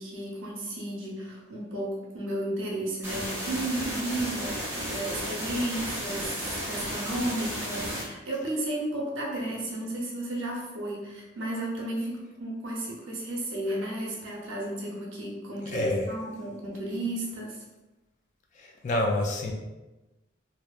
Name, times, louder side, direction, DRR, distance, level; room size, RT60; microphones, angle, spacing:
voice 1, 0.0-17.6, right 1 dB, 80° right, -3 dB, 0.7 m, -33 dB
sound 1, 3.0-8.0, equal, 15° right, 0.6 m, -33 dB
voice 2, 15.6-16.1 18.6-19.5, left 1 dB, 35° left, 1 dB, 0.3 m, -28 dB
2.8 x 2.0 x 2.3 m, 1.1 s
head